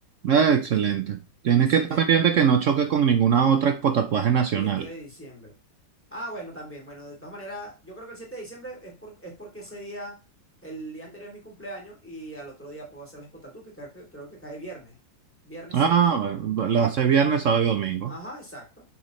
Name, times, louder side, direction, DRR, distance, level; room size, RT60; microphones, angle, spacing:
voice 1, 0.2-1.2 1.4-4.8 15.7-18.1, right 7 dB, 75° right, 0.7 m, -21 dB
voice 2, 1.5-2.0 4.5-5.5 6.1-10.1 10.6-15.0 15.4-15.9 16.7-16.9 18.1-18.8, right 1 dB, 5° left, 2.6 m, -40 dB
6.6 x 6.2 x 3.1 m
omnidirectional pair, 2.0 m